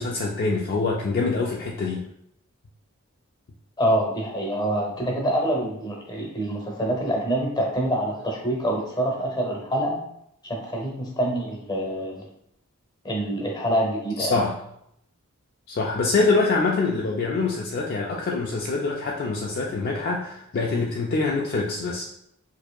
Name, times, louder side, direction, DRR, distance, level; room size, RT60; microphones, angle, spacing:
voice 1, 0.0-2.0 14.2-14.5 15.7-22.0, left 3 dB, 45° left, -1 dB, 0.3 m, -25 dB
voice 2, 3.8-10.0 10.4-12.2 13.0-14.3, right 1 dB, 20° left, 0 dB, 0.7 m, -26 dB
4.5 x 2.7 x 2.3 m, 0.74 s
head